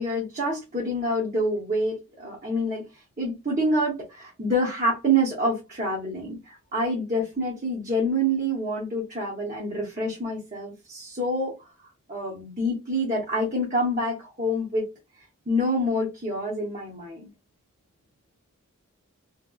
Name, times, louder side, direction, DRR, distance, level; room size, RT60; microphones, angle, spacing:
voice 1, 0.0-11.7 12.1-14.9 15.5-17.3, equal, 35° right, 0.8 m, -27 dB
2.8 x 2.8 x 2.3 m
head